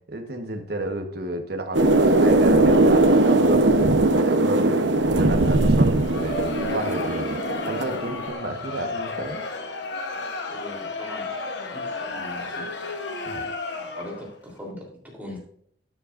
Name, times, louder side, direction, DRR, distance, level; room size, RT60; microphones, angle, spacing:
voice 1, 0.1-3.7 4.1-9.4 13.2-13.4, right 2 dB, 55° right, 5 dB, 1.3 m, -31 dB
sound 1, 1.7-8.2, right 2 dB, 70° right, 0.9 m, -19 dB
Crowd, 5.9-14.4, left 3 dB, 65° left, 1.1 m, -32 dB
voice 2, 10.5-11.3 11.6-12.7 14.0-15.4, left 1 dB, 10° right, -2 dB, 3.4 m, -40 dB
12.5 x 9.8 x 2.6 m, 0.63 s
head